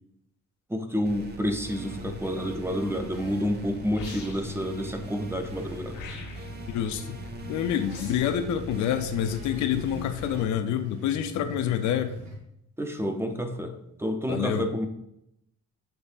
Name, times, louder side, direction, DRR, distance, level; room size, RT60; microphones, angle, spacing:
voice 1, 0.7-6.0 12.8-14.9, equal, 10° right, 6 dB, 0.5 m, -29 dB
sound 1, 1.0-10.4, right 2 dB, 35° right, 0.8 m, -42 dB
sound 2, 1.6-12.4, left 2 dB, 80° right, 1.4 m, -42 dB
sound 3, 3.9-4.6 5.9-6.6 7.9-8.4, left 4 dB, 90° left, 1.3 m, -42 dB
voice 2, 6.7-7.2 7.5-12.2 14.3-14.7, left 9 dB, 75° left, 8 dB, 0.5 m, -27 dB
6.8 x 3.2 x 2.4 m, 0.80 s
cardioid pair, 90°, 30 cm